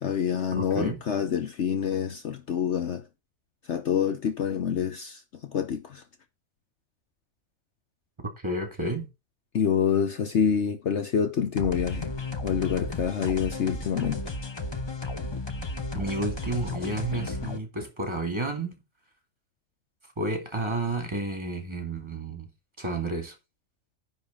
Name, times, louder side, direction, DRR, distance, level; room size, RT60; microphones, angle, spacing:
voice 1, 0.0-3.0 3.7-5.2 5.5-6.0 9.5-12.1 12.4-14.2, left 7 dB, 60° left, 1.1 m, -27 dB
voice 2, 0.6-1.0 8.2-9.1 15.9-18.7 20.2-22.5 22.8-23.3, right 2 dB, 20° right, 2.5 m, -31 dB
sound 1, 11.6-17.6, left 2 dB, 20° left, 0.8 m, -34 dB
10.0 x 3.9 x 6.7 m
omnidirectional pair, 1.5 m